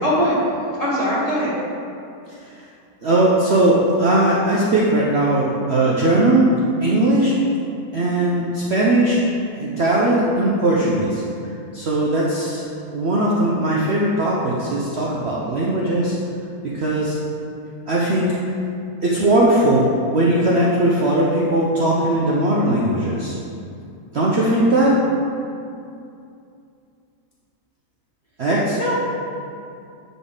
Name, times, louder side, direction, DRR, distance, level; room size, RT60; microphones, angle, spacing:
voice 1, 0.0-0.4 0.8-1.5 28.7-28.9, equal, 25° left, -9 dB, 1.9 m, -21 dB
voice 2, 3.0-6.5 6.8-7.3 7.9-9.2 9.5-11.2 11.7-12.6 12.9-16.2 16.6-17.1 17.9-18.4 19.0-23.4 24.1-25.0 28.4-28.8, right 1 dB, 50° right, -5 dB, 0.9 m, -19 dB
10.5 x 4.1 x 3.8 m, 2.6 s
omnidirectional pair, 1.7 m